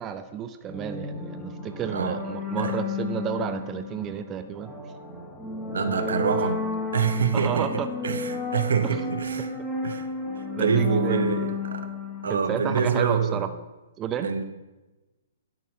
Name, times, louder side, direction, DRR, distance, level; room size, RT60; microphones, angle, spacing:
voice 1, 0.0-4.7 7.3-7.9 8.8-9.0 10.6-11.6 12.3-13.5 14.0-14.3, right 8 dB, 25° right, 0.6 m, -31 dB
sound 1, 0.7-13.2, left 4 dB, ahead, 1.5 m, -33 dB
voice 2, 1.9-2.2 2.6-2.7 5.7-9.5 9.8-10.1 10.6-11.9 12.2-13.5 14.2-14.4, right 6 dB, 75° right, 0.9 m, -26 dB
11.5 x 4.5 x 5.7 m
hypercardioid pair, 125°, 0 cm